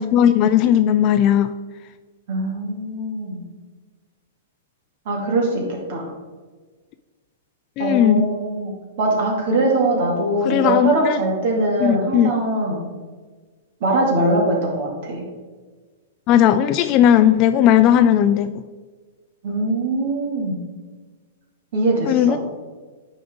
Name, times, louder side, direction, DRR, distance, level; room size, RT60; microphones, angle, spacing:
voice 1, 0.0-1.5 7.8-8.2 10.4-11.2 11.8-12.3 16.3-18.6 22.1-22.4, left 10 dB, 40° left, 10 dB, 0.3 m, -16 dB
voice 2, 2.3-3.4 5.1-6.1 7.8-8.7 9.0-12.8 13.8-15.3 19.4-20.6 21.7-22.4, right 2 dB, 55° right, -1 dB, 2.2 m, -22 dB
9.3 x 5.0 x 3.6 m, 1.4 s
hypercardioid pair, 110°, 0 cm